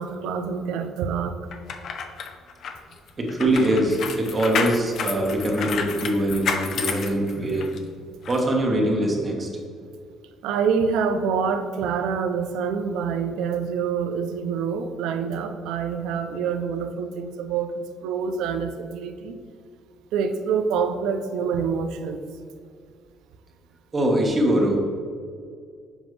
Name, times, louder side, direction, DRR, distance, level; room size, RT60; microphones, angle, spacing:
voice 1, 0.0-1.4 10.4-19.4 20.1-22.2, right 6 dB, 85° right, 7 dB, 0.5 m, -26 dB
sound 1, 1.5-7.8 8.2-8.4, left 6 dB, 60° left, 0.6 m, -30 dB
voice 2, 3.2-7.7 8.3-9.5 23.9-24.8, right 1 dB, 30° right, 0 dB, 1.4 m, -22 dB
7.3 x 5.1 x 3.2 m, 2.2 s
cardioid pair, 90°, 0 cm